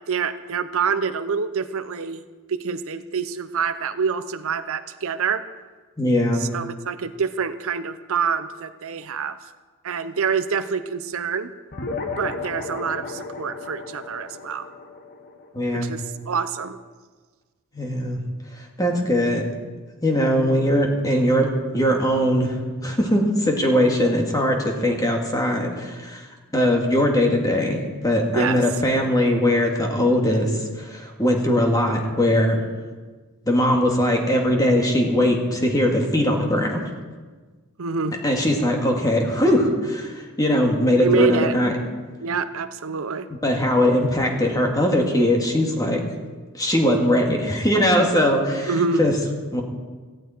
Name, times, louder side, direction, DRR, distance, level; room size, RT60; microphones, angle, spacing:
voice 1, 0.1-2.2 2.5-5.4 6.4-9.4 9.8-11.5 12.2-14.7 15.7-16.8 28.3-28.6 37.8-38.2 41.0-41.6 42.2-43.3 48.7-49.1, right 5 dB, 65° right, 11 dB, 0.7 m, -26 dB
voice 2, 6.0-6.4 15.5-15.9 17.7-18.2 18.6-19.4 20.0-21.5 21.7-22.5 22.8-26.3 26.5-32.6 33.5-36.8 38.2-41.7 43.4-46.0 46.5-48.7 49.0-49.1 49.5-49.6, left 1 dB, 15° left, 1 dB, 2.3 m, -20 dB
sound 1, 11.7-16.5, left 3 dB, 45° left, 1.3 m, -34 dB
17.5 x 15.0 x 4.5 m, 1.4 s
head